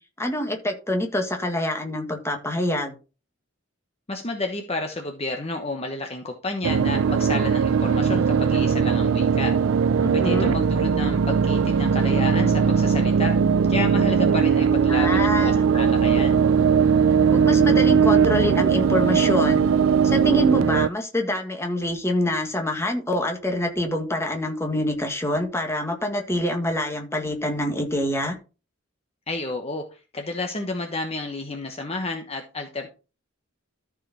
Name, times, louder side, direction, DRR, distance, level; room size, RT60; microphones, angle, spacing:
voice 1, 0.2-2.9 10.0-10.6 14.9-15.6 17.3-19.7 20.0-28.4, left 1 dB, 15° left, 3 dB, 1.8 m, -26 dB
voice 2, 4.1-9.5 10.1-13.4 13.7-16.4 29.3-32.9, left 2 dB, 30° left, 4 dB, 1.1 m, -31 dB
sound 1, 6.6-20.9, right 6 dB, 90° right, 0.4 m, -19 dB
13.5 x 4.9 x 4.2 m, 0.33 s
head